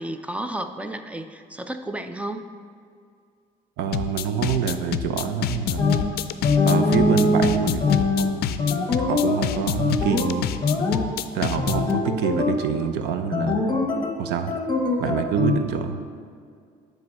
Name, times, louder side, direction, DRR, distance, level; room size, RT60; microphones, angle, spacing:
voice 1, 0.0-2.5, right 1 dB, 10° right, 8 dB, 0.4 m, -32 dB
voice 2, 3.8-6.1 6.6-8.6 9.0-10.5 11.3-13.8 14.2-14.5 15.0-16.0, right 7 dB, 85° right, 8 dB, 0.6 m, -26 dB
sound 1, 3.9-11.9, left 10 dB, 70° left, 0.4 m, -27 dB
sound 2, 5.8-6.1 6.4-9.4 9.8-10.3 10.6-11.1 11.6-12.6 13.3-14.2 14.5-15.6, left 2 dB, 25° left, 1.0 m, -22 dB
9.4 x 3.2 x 6.4 m, 2.2 s
cardioid pair, 110°, 17 cm